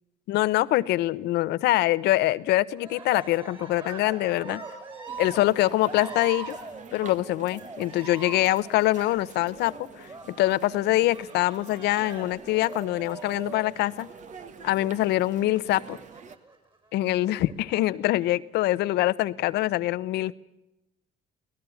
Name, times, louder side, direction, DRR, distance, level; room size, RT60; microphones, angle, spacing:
voice 1, 0.3-4.6 5.2-6.5 6.9-10.1 10.4-14.1 14.6-16.0 16.9-20.3, left 16 dB, 80° left, 16 dB, 0.9 m, -24 dB
Cheering, 2.7-14.4 15.7-16.6 17.3-17.9, right 3 dB, 30° right, 6.9 m, -42 dB
sound 1, 5.1-16.4, right 6 dB, 45° right, 1.6 m, -48 dB
23.5 x 18.5 x 7.1 m, 0.90 s
cardioid pair, 110°, 17 cm